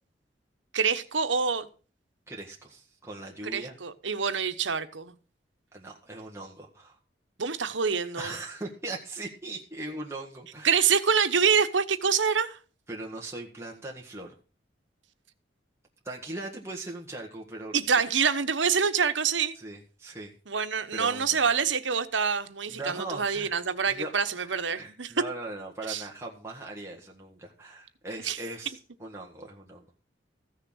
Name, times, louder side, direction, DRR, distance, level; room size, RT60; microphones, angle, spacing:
voice 1, 0.7-1.7 3.4-5.1 7.4-8.3 10.6-12.6 17.7-19.6 20.5-25.1 25.9-26.0 28.2-28.4, right 6 dB, 90° right, 1.1 m, -26 dB
voice 2, 2.3-3.8 5.7-7.0 8.2-10.8 12.9-14.4 16.0-17.8 19.5-20.3 20.9-21.4 22.7-23.5 23.9-29.8, right 2 dB, 15° right, 1.6 m, -40 dB
15.0 x 6.6 x 6.4 m
head